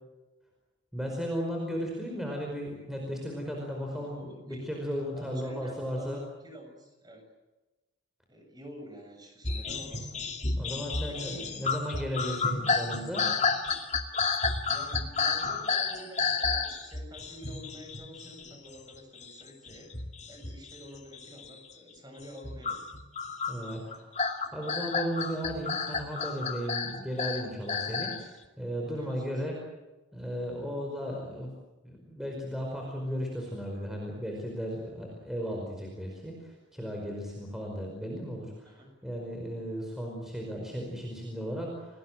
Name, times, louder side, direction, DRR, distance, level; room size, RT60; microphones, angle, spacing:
voice 1, 0.9-6.2 10.6-13.3 23.5-24.1 24.5-28.1 28.6-29.6 30.1-31.5 31.8-42.0, equal, ahead, 0 dB, 5.0 m, -35 dB
voice 2, 3.9-4.7 5.1-7.3 8.3-10.2 11.1-11.5 14.7-19.9 20.3-22.8 27.5-27.8 28.8-29.4 38.6-38.9, equal, 20° right, 4 dB, 7.2 m, -48 dB
sound 1, 9.4-18.9 19.2-20.9 21.1-21.6 22.2-28.2, left 5 dB, 35° left, 2.4 m, -31 dB
29.5 x 20.0 x 7.8 m, 1.1 s
head